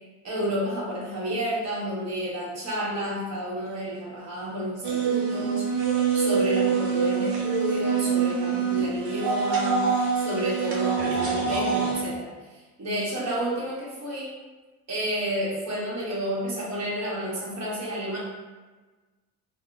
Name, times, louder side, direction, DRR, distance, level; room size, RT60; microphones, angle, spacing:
voice 1, 0.2-5.7 6.1-9.9 10.1-14.3 14.9-18.2, equal, 40° right, -7 dB, 1.2 m, -30 dB
sound 1, 4.8-12.0, right 6 dB, 60° right, 0.8 m, -25 dB
2.8 x 2.0 x 2.4 m, 1.2 s
supercardioid pair, 65°, 42 cm